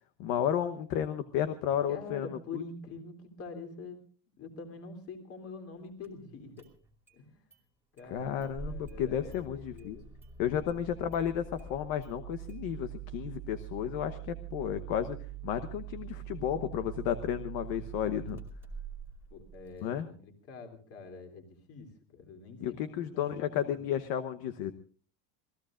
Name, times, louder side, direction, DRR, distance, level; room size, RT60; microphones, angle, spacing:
voice 1, 0.2-2.3 2.5-2.6 8.1-10.0 10.4-15.2 15.4-18.4 19.8-20.1 22.6-24.7, left 9 dB, 50° left, 9 dB, 1.1 m, -32 dB
voice 2, 1.9-4.0 4.4-6.7 7.1-7.5 7.9-10.0 19.3-23.8, left 4 dB, 30° left, 5 dB, 3.2 m, -46 dB
Engine starting, 6.0-6.1 6.6-7.2 7.5-7.6 8.0-19.9, right 9 dB, 5° right, 2.5 m, -44 dB
27.0 x 18.5 x 2.5 m, 0.41 s
cardioid pair, 180°, 46 cm